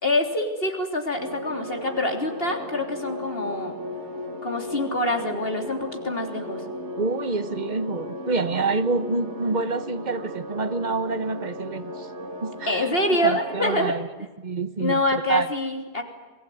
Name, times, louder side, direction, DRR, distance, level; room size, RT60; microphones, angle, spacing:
voice 1, 0.0-3.7 4.4-6.6 12.7-14.0 14.8-16.0, left 1 dB, 60° left, 4 dB, 3.7 m, -25 dB
sound 1, 1.2-13.9, left 1 dB, 80° right, 2.2 m, -36 dB
voice 2, 7.0-12.1 12.4-13.0 13.2-14.1 14.4-15.5, right 3 dB, 45° right, 14 dB, 1.2 m, -27 dB
27.0 x 20.0 x 9.4 m, 1.2 s
omnidirectional pair, 1.1 m